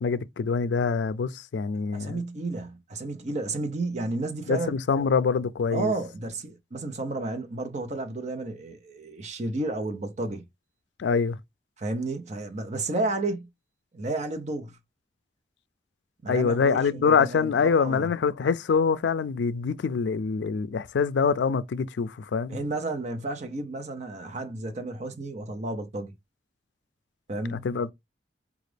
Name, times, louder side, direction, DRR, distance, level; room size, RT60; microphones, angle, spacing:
voice 1, 0.0-2.2 4.5-5.9 11.0-11.4 16.3-22.6 27.5-27.9, left 5 dB, 80° left, 0.4 m, -25 dB
voice 2, 1.9-4.8 5.7-10.4 11.8-13.5 13.9-14.8 16.2-18.1 22.5-26.1 27.3-27.7, right 2 dB, 40° right, 0.7 m, -32 dB
4.9 x 2.4 x 3.3 m
head